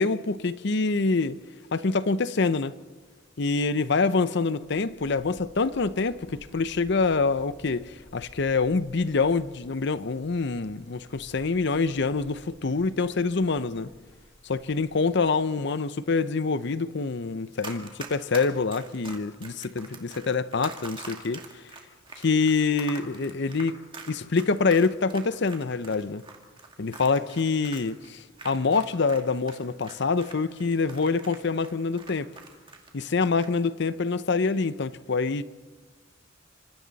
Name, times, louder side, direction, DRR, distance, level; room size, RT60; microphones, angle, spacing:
voice 1, 0.0-1.4 1.7-2.7 3.4-13.9 14.4-21.4 22.2-23.7 24.1-26.2 26.8-32.3 32.9-35.4, left 4 dB, 60° left, 0.7 m, -26 dB
sound 1, 4.6-15.4, equal, 10° left, 3.2 m, -54 dB
Run, 17.6-29.2 29.5-32.9 33.2-33.5, right 4 dB, 25° right, 2.4 m, -43 dB
28.0 x 26.5 x 4.1 m
head